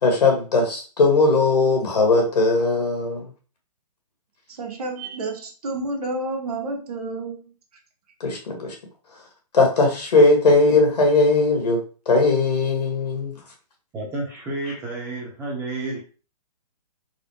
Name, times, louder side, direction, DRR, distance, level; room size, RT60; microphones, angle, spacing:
voice 1, 0.0-3.3 8.2-8.7 9.1-9.2 9.5-13.4 14.7-14.8, left 3 dB, 75° left, 1.6 m, -19 dB
voice 2, 4.5-7.5, right 2 dB, 70° right, 1.1 m, -30 dB
voice 3, 13.9-16.0, right 2 dB, 15° right, 0.9 m, -30 dB
4.1 x 2.2 x 3.1 m
hypercardioid pair, 140°, 20 cm